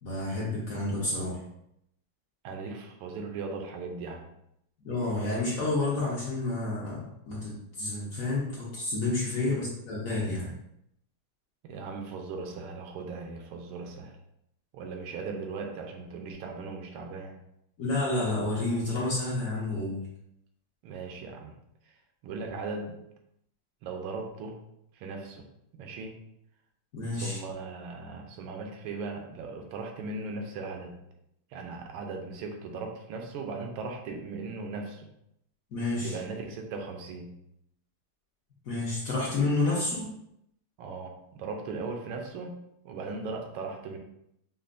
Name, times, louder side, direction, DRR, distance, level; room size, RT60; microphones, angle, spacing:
voice 1, 0.0-1.4 4.8-10.5 17.8-20.0 26.9-27.4 35.7-36.2 38.6-40.1, left 2 dB, 65° left, -5 dB, 0.8 m, -30 dB
voice 2, 2.4-4.3 9.4-9.6 11.6-14.2 14.7-17.4 20.8-21.6 22.2-23.0 23.8-24.6 24.9-25.5 25.8-26.2 27.1-31.0 31.5-35.1 36.0-37.4 40.8-44.0, right 4 dB, 80° right, 3 dB, 1.4 m, -38 dB
5.4 x 2.0 x 2.5 m, 0.77 s
omnidirectional pair, 2.4 m